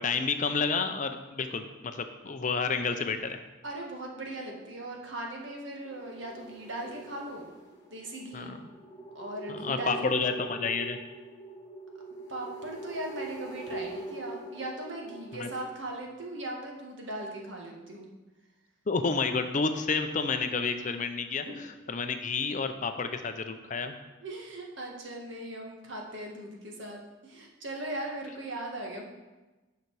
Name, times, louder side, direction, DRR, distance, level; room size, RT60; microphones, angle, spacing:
voice 1, 0.0-3.4 8.3-8.6 9.5-11.0 15.3-15.5 18.9-23.9, left 4 dB, 35° left, 7 dB, 0.5 m, -30 dB
voice 2, 3.6-7.5 7.9-8.5 9.2-10.2 12.3-18.1 21.5-21.6 24.2-29.1, right 1 dB, 65° right, 0 dB, 1.6 m, -39 dB
sound 1, 5.8-15.7, right 2 dB, 20° left, 2.5 m, -43 dB
9.3 x 5.8 x 4.7 m, 1.1 s
head